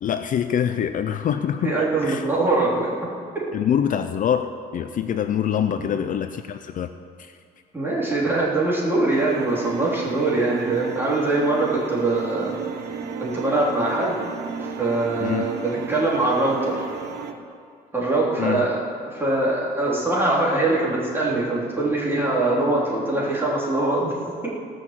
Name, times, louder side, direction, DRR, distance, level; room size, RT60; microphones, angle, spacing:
voice 1, 0.0-2.2 3.5-4.4 4.7-6.9 7.2-7.3 15.2-15.5 18.4-18.7, left 9 dB, 50° left, 9 dB, 0.5 m, -24 dB
voice 2, 1.6-2.9 5.8-5.9 7.7-12.5 13.2-14.2 14.6-16.9 17.9-24.2 24.4-24.5, right 2 dB, 15° right, -6 dB, 3.5 m, -23 dB
sound 1, 9.1-17.3, right 7 dB, 75° right, 1.2 m, -33 dB
17.5 x 6.3 x 7.5 m, 2.3 s
cardioid pair, 125°, 17 cm